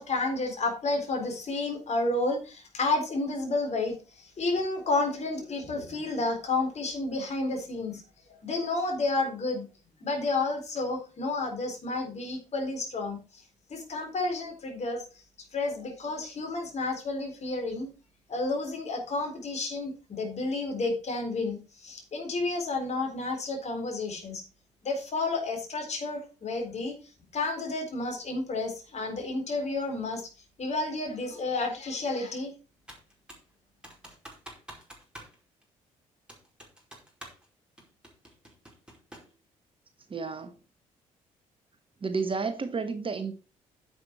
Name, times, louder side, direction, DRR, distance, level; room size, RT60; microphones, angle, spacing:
voice 1, 0.0-8.0 8.3-9.7 10.0-13.4 13.7-15.0 15.5-17.9 18.3-24.4 24.8-27.0 27.3-30.3 30.6-32.5, left 3 dB, 40° left, 4.1 m, -31 dB
Computer keyboard, 32.9-33.5 33.8-35.4 35.6-35.7 36.3-37.5 37.8-39.3, right 1 dB, 5° right, 4.7 m, -48 dB
voice 2, 40.1-40.6 42.0-43.3, right 4 dB, 30° right, 1.3 m, -31 dB
10.5 x 7.9 x 4.5 m
figure-of-eight pair, 40°, 18 cm